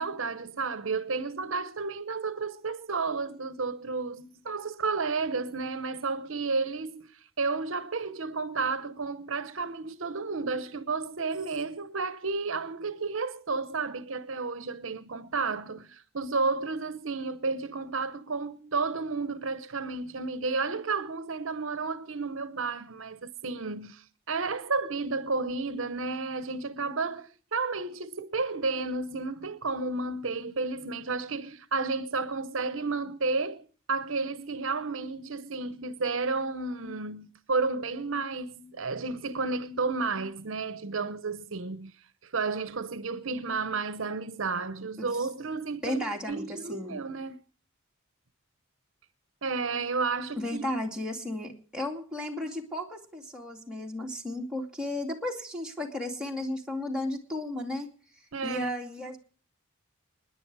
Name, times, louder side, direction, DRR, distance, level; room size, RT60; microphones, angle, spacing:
voice 1, 0.0-7.1 7.4-41.9 42.2-47.4 49.4-50.6 58.3-58.7, right 4 dB, 65° right, 0.8 m, -32 dB
voice 2, 45.8-46.9 50.4-57.9 58.4-59.2, left 1 dB, 5° right, 2.5 m, -34 dB
29.5 x 10.5 x 4.7 m
head